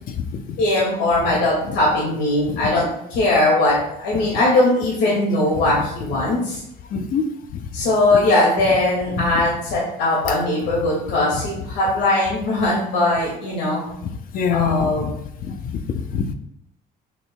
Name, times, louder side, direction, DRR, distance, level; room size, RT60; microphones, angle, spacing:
voice 1, 0.6-2.8 3.1-6.6 7.7-13.8 14.5-15.1, left 2 dB, 80° left, -5 dB, 2.3 m, -20 dB
voice 2, 6.9-7.6 9.3-9.4 10.3-10.4 11.6-11.7 14.3-15.1 15.5-16.3, left 6 dB, 50° left, 8 dB, 0.7 m, -25 dB
6.9 x 6.1 x 2.3 m, 0.77 s
cardioid pair, 150°, 18 cm